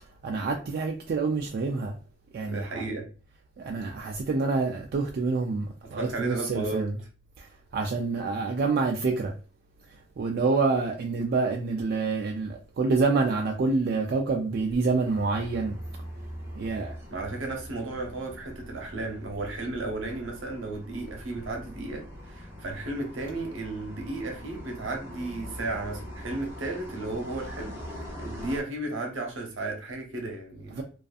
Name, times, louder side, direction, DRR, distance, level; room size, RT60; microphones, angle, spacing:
voice 1, 0.2-2.0 2.3-2.8 3.6-6.9 7.4-7.5 7.7-9.3 10.2-15.8 16.6-16.9 30.7-30.8, right 4 dB, 50° right, 0.3 m, -27 dB
voice 2, 2.5-3.1 5.8-6.9 16.7-30.8, right 2 dB, 75° right, 0.8 m, -34 dB
sound 1, 15.0-28.6, equal, 10° right, 0.7 m, -42 dB
2.5 x 2.3 x 2.4 m
head